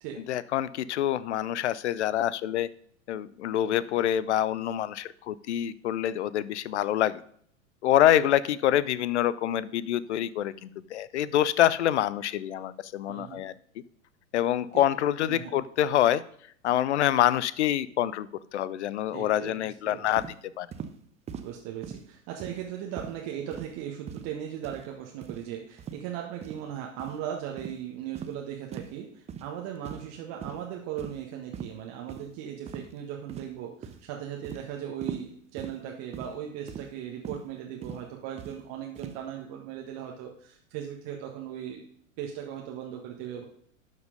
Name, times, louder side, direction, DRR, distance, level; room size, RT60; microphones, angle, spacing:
voice 1, 0.3-2.7 3.1-7.2 7.8-13.5 14.3-16.2 16.6-20.2 20.6-20.7, left 12 dB, 60° left, 18 dB, 0.6 m, -26 dB
voice 2, 13.1-13.4 14.7-14.9 15.3-15.5 19.1-20.1 21.4-41.9 42.2-43.4, right 9 dB, 40° right, 0 dB, 1.5 m, -38 dB
sound 1, 20.2-20.4 20.7-20.9 21.3-21.5 21.8-22.1 22.4-22.7 23.0-23.2 23.5-23.7 24.1-24.3 24.6-24.9 25.2-25.4 25.8-26.0 26.4-26.6 27.0-27.2 27.6-27.8 28.1-28.3 28.7-28.9 29.3-29.5 29.8-30.1 30.4-30.6 31.0-31.2 31.5-31.7 32.1-32.2 32.7-32.9 33.3-33.6 33.8-34.1 34.4-34.6 35.0-35.3 35.6-35.8 36.1-36.3 36.7-36.9 37.2-37.4 37.8-38.0 38.4-38.6 38.9-39.2, right 7 dB, 15° right, 0.7 m, -40 dB
12.0 x 5.3 x 5.1 m, 0.63 s
figure-of-eight pair, 95°, 40 cm